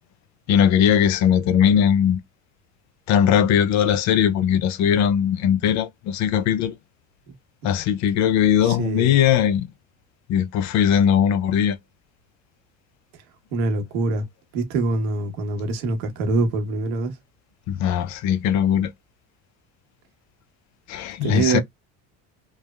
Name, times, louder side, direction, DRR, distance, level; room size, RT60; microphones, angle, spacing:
voice 1, 0.5-2.2 3.1-6.7 7.6-9.7 10.3-11.8 17.7-18.9 20.9-21.6, left 9 dB, 50° left, 0.5 m, -19 dB
voice 2, 8.6-9.1 13.5-14.2 14.5-17.2 21.2-21.6, right 3 dB, 85° right, 1.2 m, -24 dB
3.2 x 2.1 x 2.3 m
cardioid pair, 125°, 35 cm